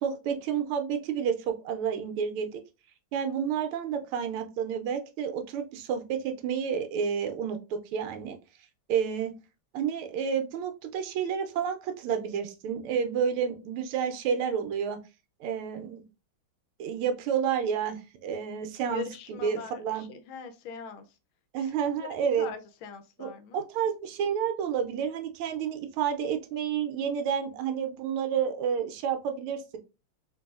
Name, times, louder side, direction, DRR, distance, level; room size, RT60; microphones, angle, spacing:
voice 1, 0.0-2.6 3.1-8.4 8.9-9.3 9.7-15.0 15.4-16.0 16.8-20.0 21.5-22.5 23.2-29.8, right 7 dB, 80° right, 1.5 m, -30 dB
voice 2, 18.9-21.2 21.6-21.7 22.0-22.1 22.4-23.7, left 7 dB, 75° left, 1.3 m, -41 dB
3.8 x 2.6 x 2.3 m
omnidirectional pair, 2.4 m